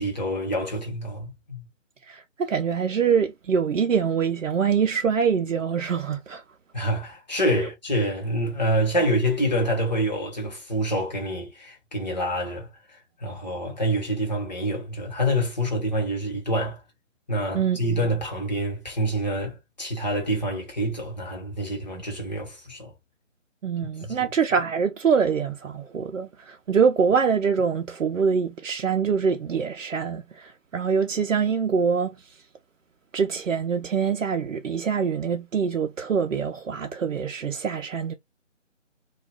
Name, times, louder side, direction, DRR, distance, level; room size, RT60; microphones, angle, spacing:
voice 1, 0.0-1.6 6.7-12.7 13.2-16.8 17.3-22.9 24.0-24.2, equal, 35° left, 1.1 m, -27 dB
voice 2, 2.0-6.4 7.6-7.7 9.0-9.1 17.5-18.1 23.6-32.5 33.1-38.1, right 6 dB, 75° right, 0.5 m, -24 dB
2.3 x 2.3 x 3.3 m
figure-of-eight pair, 155°, 38 cm